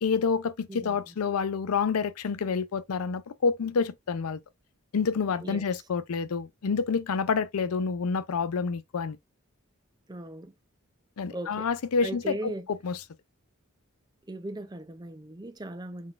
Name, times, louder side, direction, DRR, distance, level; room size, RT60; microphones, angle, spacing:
voice 1, 0.0-4.4 4.9-9.2 11.2-13.0, left 5 dB, 80° left, 0.5 m, -28 dB
voice 2, 10.1-10.5 11.3-11.7 12.0-12.7 14.3-16.1, right 1 dB, 20° right, 0.4 m, -38 dB
3.9 x 3.5 x 2.4 m
head